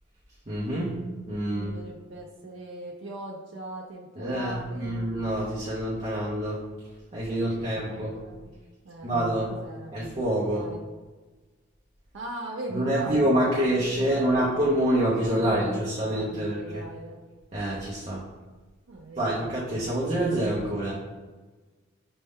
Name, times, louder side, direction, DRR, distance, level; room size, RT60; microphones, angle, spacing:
voice 1, 0.5-1.0 1.3-1.7 4.2-6.6 7.1-8.2 9.0-9.5 9.9-10.6 12.7-16.8 17.5-18.2 19.2-20.9, right 1 dB, 30° right, -6 dB, 0.6 m, -26 dB
voice 2, 1.5-5.1 7.3-8.5 8.8-9.2 9.5-10.0 10.5-10.8 12.1-14.5 15.2-17.2 18.9-19.4, right 1 dB, 80° right, -2 dB, 0.5 m, -40 dB
5.2 x 2.2 x 3.5 m, 1.3 s
head